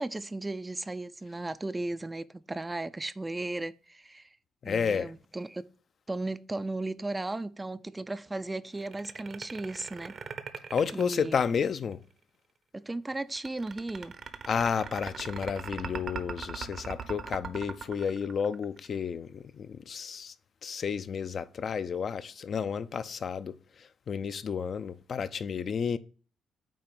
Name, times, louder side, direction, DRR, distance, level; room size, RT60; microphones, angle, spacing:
voice 1, 0.0-4.3 4.7-5.7 6.1-10.2 10.9-11.4 12.7-14.1, right 2 dB, 15° right, 0.4 m, -36 dB
voice 2, 4.6-5.1 10.7-12.0 14.5-20.3 20.6-23.6 24.1-26.0, left 6 dB, 50° left, 0.5 m, -31 dB
sound 1, 8.8-11.9 13.4-18.9, right 6 dB, 55° right, 0.9 m, -40 dB
8.7 x 2.9 x 5.2 m
cardioid pair, 85°, 0 cm